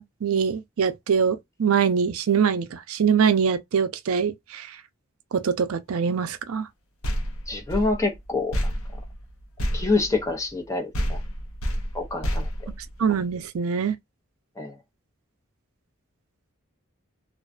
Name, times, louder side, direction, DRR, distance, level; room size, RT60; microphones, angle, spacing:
voice 1, 0.0-4.8 5.3-6.7 13.0-14.0, right 6 dB, 85° right, 0.4 m, -23 dB
sound 1, 7.0-10.7 10.9-13.4, equal, 75° left, 0.6 m, -30 dB
voice 2, 7.5-8.6 9.7-11.2 11.9-12.5 14.6-14.7, left 3 dB, 15° left, 0.4 m, -26 dB
2.4 x 2.2 x 2.4 m
head